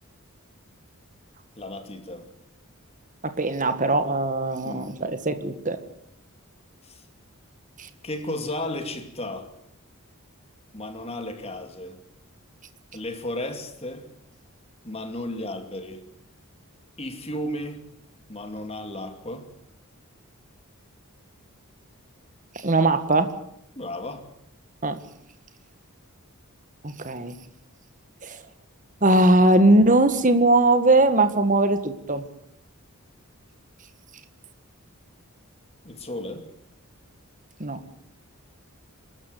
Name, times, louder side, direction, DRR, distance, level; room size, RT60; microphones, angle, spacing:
voice 1, 1.6-2.3 4.6-4.9 6.8-7.0 8.0-9.5 10.7-12.0 12.9-14.1 14.8-16.0 17.0-17.8 18.3-19.5 23.8-24.3 35.8-36.4, left 1 dB, 25° left, 6 dB, 2.7 m, -34 dB
voice 2, 3.2-5.8 7.8-7.9 22.5-23.3 24.8-25.0 26.8-27.4 28.2-28.4 29.0-32.2 37.6-37.8, right 2 dB, 35° right, 10 dB, 1.7 m, -20 dB
25.0 x 13.5 x 9.3 m, 0.78 s
head